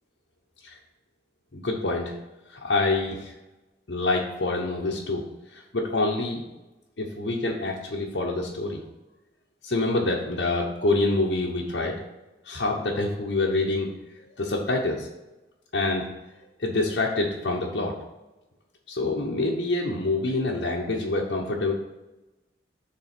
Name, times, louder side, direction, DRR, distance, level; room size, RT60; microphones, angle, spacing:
voice 1, 1.5-2.2 2.5-3.3 3.9-6.4 7.0-8.8 9.6-12.0 12.4-13.9 14.1-15.1 15.7-16.1 16.6-18.0 18.9-21.7, left 2 dB, 75° left, -4 dB, 0.9 m, -26 dB
6.7 x 3.8 x 5.9 m, 1.1 s
head